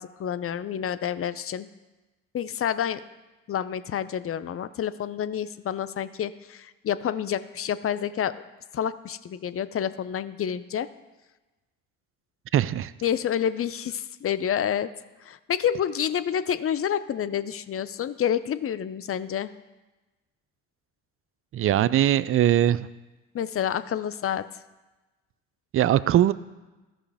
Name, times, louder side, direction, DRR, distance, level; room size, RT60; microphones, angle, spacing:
voice 1, 0.0-1.7 2.3-3.0 3.5-8.3 8.7-10.9 13.0-14.9 15.2-19.5 23.3-24.4, left 9 dB, 35° left, 14 dB, 0.5 m, -28 dB
voice 2, 12.5-12.9 21.5-22.9 25.7-26.3, right 12 dB, 35° right, 16 dB, 0.4 m, -21 dB
14.0 x 5.7 x 3.4 m, 1.1 s
hypercardioid pair, 50°, 39 cm